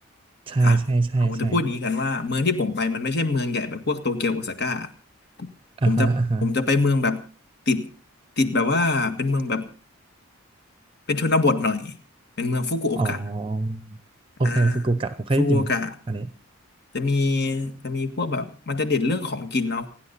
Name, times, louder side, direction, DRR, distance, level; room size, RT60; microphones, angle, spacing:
voice 1, 0.5-1.6 5.8-6.6 13.0-14.0 14.4-15.7 16.1-16.3, right 2 dB, 25° right, 12 dB, 0.7 m, -23 dB
voice 2, 1.2-4.9 5.4-5.5 5.9-6.1 6.4-7.2 7.7-7.9 8.4-9.7 11.1-11.9 12.4-13.2 14.4-14.9 15.4-15.9 16.9-19.9, left 3 dB, 50° left, 8 dB, 1.8 m, -24 dB
29.0 x 10.5 x 4.1 m, 0.36 s
head